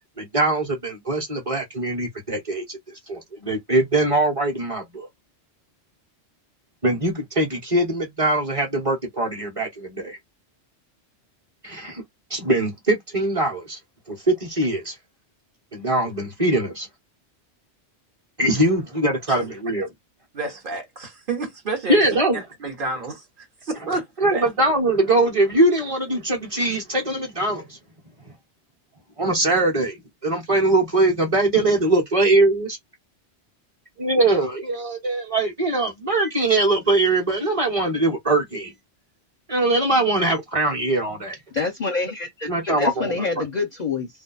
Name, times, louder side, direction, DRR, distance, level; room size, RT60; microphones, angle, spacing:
voice 1, 0.2-5.1 6.8-10.2 11.6-12.0 12.3-13.8 14.1-15.0 15.7-16.9 18.4-19.9 21.9-22.5 24.2-27.8 28.2-28.3 29.2-32.8 34.0-38.7 39.5-41.4 42.5-43.5, right 2 dB, 30° right, 1.2 m, -22 dB
voice 2, 20.3-22.0 22.3-24.5, right 3 dB, 50° right, 1.2 m, -30 dB
voice 3, 41.5-44.1, left 4 dB, 50° left, 0.6 m, -26 dB
2.7 x 2.3 x 4.0 m
omnidirectional pair, 1.2 m